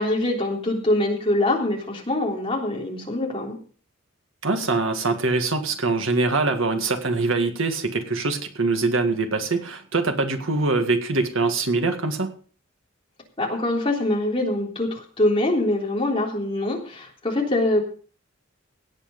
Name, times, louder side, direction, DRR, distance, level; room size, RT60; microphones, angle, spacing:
voice 1, 0.0-3.6 13.4-17.8, left 1 dB, 25° left, -1 dB, 3.5 m, -24 dB
voice 2, 4.4-12.3, right 3 dB, 65° right, 6 dB, 1.9 m, -23 dB
17.5 x 8.5 x 5.3 m, 0.42 s
head